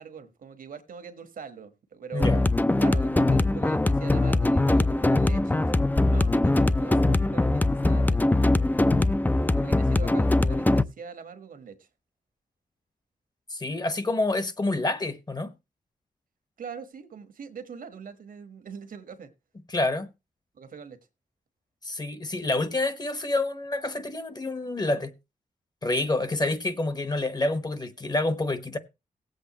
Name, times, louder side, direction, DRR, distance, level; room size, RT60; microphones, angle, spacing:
voice 1, 0.0-2.4 2.8-8.8 9.5-11.9 16.6-19.3 20.5-21.0 26.3-26.5, right 6 dB, 80° right, 1.4 m, -42 dB
sound 1, 2.2-10.8, left 2 dB, 10° left, 0.5 m, -22 dB
voice 2, 13.5-15.5 19.7-20.1 21.8-25.1 25.8-28.8, left 2 dB, 30° left, 1.2 m, -28 dB
18.5 x 8.0 x 3.0 m
wide cardioid pair, 95°, 14 cm